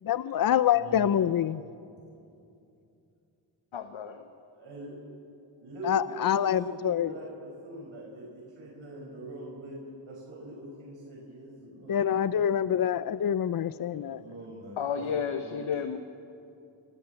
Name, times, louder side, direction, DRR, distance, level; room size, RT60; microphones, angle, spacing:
voice 1, 0.1-1.6 5.9-7.1 11.9-14.2, left 9 dB, 45° left, 15 dB, 0.6 m, -26 dB
voice 2, 0.7-1.1 4.5-5.0 5.6-9.8 10.0-12.9 13.9-15.7, right 1 dB, 75° right, -3 dB, 5.7 m, -43 dB
voice 3, 3.7-4.3 14.8-16.0, left 7 dB, 75° left, 7 dB, 1.2 m, -32 dB
25.0 x 19.0 x 7.1 m, 2.6 s
cardioid pair, 65°, 47 cm